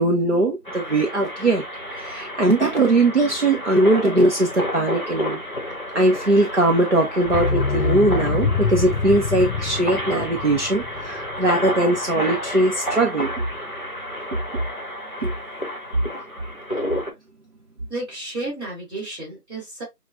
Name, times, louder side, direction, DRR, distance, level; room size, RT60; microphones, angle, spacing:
voice 1, 0.0-1.6 1.9-5.4 5.9-13.3 15.2-15.3, right 2 dB, 50° right, 0.8 m, -20 dB
sound 1, 0.6-17.1, equal, 35° left, 0.9 m, -31 dB
sound 2, 7.3-12.0 12.3-12.4, left 4 dB, 70° left, 0.7 m, -25 dB
voice 2, 17.9-19.8, right 2 dB, 15° right, 2.7 m, -32 dB
6.2 x 2.4 x 2.4 m
figure-of-eight pair, 175°, 47 cm